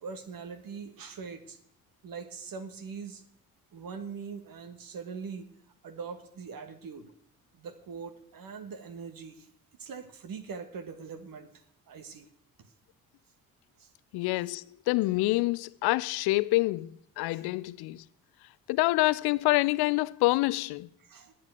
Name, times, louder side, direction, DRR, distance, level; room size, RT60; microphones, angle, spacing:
voice 1, 0.0-1.6 2.0-3.2 3.7-5.5 5.8-7.1 7.5-9.5 9.8-12.3 12.6-12.7 13.8-13.9 17.3-17.4 21.0-21.3, right 5 dB, 50° right, 1.6 m, -42 dB
voice 2, 14.1-18.0 18.7-20.9, left 20 dB, 60° left, 0.7 m, -27 dB
11.0 x 8.9 x 8.0 m
figure-of-eight pair, 45°, 43 cm